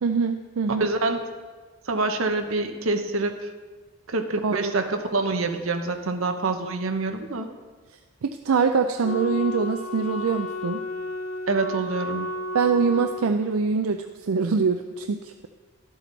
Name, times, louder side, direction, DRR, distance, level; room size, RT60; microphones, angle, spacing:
voice 1, 0.0-0.9 4.4-4.7 8.2-10.9 12.5-15.5, right 5 dB, 80° right, 7 dB, 0.4 m, -24 dB
voice 2, 0.8-1.2 1.9-3.3 4.1-7.5 11.5-12.3, right 3 dB, 65° right, 6 dB, 0.9 m, -26 dB
Wind instrument woodwind instrument, 9.0-13.3, left 1 dB, 65° left, 0.8 m, -32 dB
12.5 x 7.8 x 4.0 m, 1.4 s
head